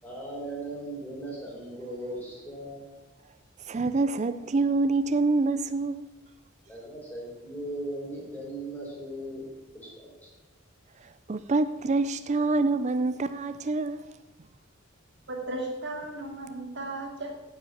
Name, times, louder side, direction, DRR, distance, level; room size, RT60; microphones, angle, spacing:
voice 1, 0.0-2.8 6.7-9.4 9.7-10.2, right 1 dB, 10° left, -5 dB, 4.9 m, -38 dB
voice 2, 3.6-6.0 11.0-14.0, right 3 dB, 35° right, 12 dB, 0.4 m, -26 dB
voice 3, 15.3-17.4, right 2 dB, 60° right, 0 dB, 2.6 m, -35 dB
9.8 x 7.8 x 7.8 m, 1.1 s
head